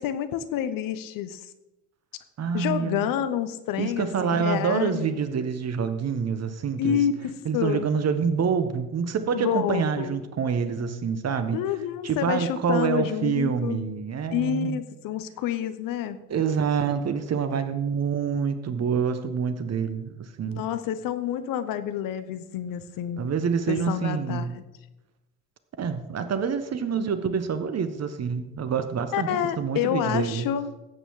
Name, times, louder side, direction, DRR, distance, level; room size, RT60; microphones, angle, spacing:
voice 1, 0.0-1.4 2.5-5.1 6.8-7.8 9.3-10.2 11.5-13.8 14.3-16.2 20.5-23.3 23.7-24.6 29.1-30.7, left 10 dB, 50° left, 12 dB, 1.0 m, -28 dB
voice 2, 2.4-3.1 3.8-7.0 7.4-11.6 12.0-14.8 16.3-20.6 23.2-24.5 25.8-30.5, right 6 dB, 40° right, 10 dB, 1.3 m, -27 dB
16.5 x 8.6 x 3.7 m, 1.0 s
hypercardioid pair, 60°, 42 cm